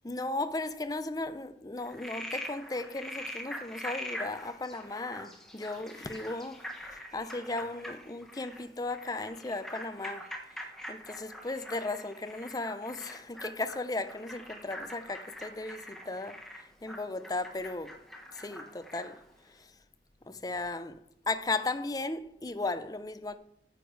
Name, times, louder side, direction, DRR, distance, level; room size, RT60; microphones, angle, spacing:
voice 1, 0.0-10.3 10.9-18.0 18.3-19.2 19.5-19.7 20.3-23.4, left 2 dB, 20° left, 0.5 m, -36 dB
Frog, 1.8-19.2, equal, ahead, 1.3 m, -44 dB
9.8 x 8.0 x 4.7 m
head